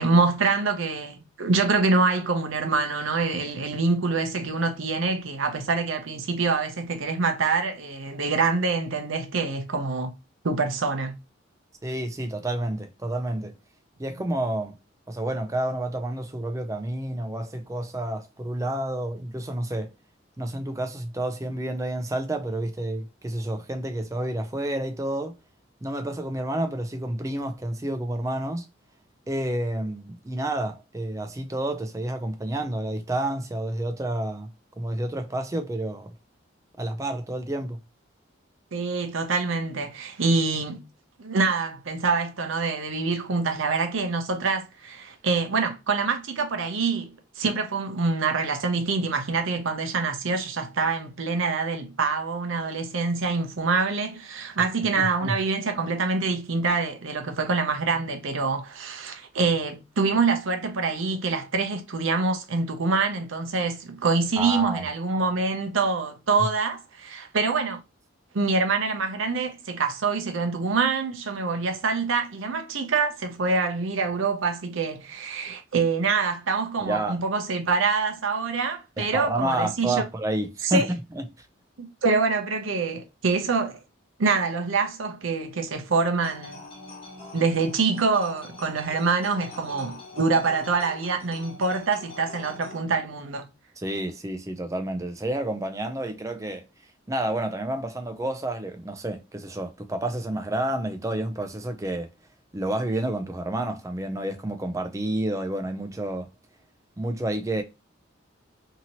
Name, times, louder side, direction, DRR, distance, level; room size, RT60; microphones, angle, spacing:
voice 1, 0.0-10.1 10.4-11.2 38.7-40.8 41.2-67.8 68.3-80.0 80.6-80.9 81.8-83.8 84.2-86.6 87.3-93.5, right 4 dB, 70° right, 0.6 m, -25 dB
voice 2, 11.8-13.5 14.0-14.7 15.1-19.9 20.4-25.3 25.8-28.7 29.3-34.5 34.8-36.1 36.8-37.8 55.0-55.4 64.4-64.8 76.8-77.2 79.0-81.5 93.8-96.6 97.1-102.1 102.5-106.3 107.0-107.6, right 1 dB, 15° right, 0.4 m, -29 dB
sound 1, 86.2-92.8, left 2 dB, 25° left, 1.0 m, -43 dB
2.8 x 2.7 x 2.8 m
head